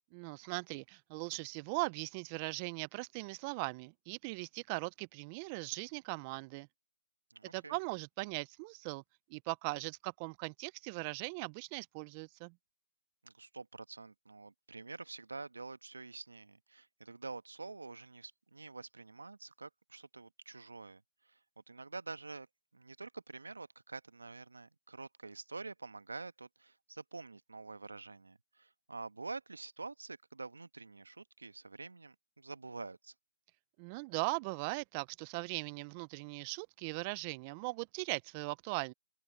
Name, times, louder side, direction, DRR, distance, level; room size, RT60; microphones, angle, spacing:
voice 1, 0.1-6.7 7.5-9.0 9.3-12.5 33.8-38.9, right 27 dB, 25° right, 0.6 m, -39 dB
voice 2, 7.3-7.8 13.2-21.4 21.7-22.5 22.7-33.1, right 3 dB, 90° right, 1.2 m, -47 dB
open air
hypercardioid pair, 150°, 0 cm